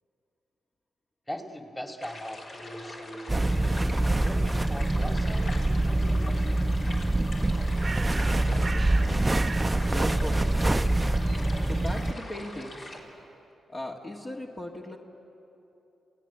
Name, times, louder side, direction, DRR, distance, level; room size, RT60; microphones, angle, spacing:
voice 1, 1.3-6.5, equal, 15° left, 4 dB, 2.4 m, -41 dB
sound 1, 2.0-13.0, left 1 dB, 60° left, 3.7 m, -42 dB
sound 2, 3.3-12.1, right 2 dB, 20° right, 0.6 m, -25 dB
Bird, 7.3-13.3, right 4 dB, 45° right, 0.9 m, -42 dB
voice 2, 8.3-8.9 9.7-10.5 11.6-12.9 13.7-15.0, left 1 dB, 35° left, -1 dB, 1.8 m, -38 dB
28.0 x 17.0 x 7.4 m, 2.9 s
hypercardioid pair, 40°, 0 cm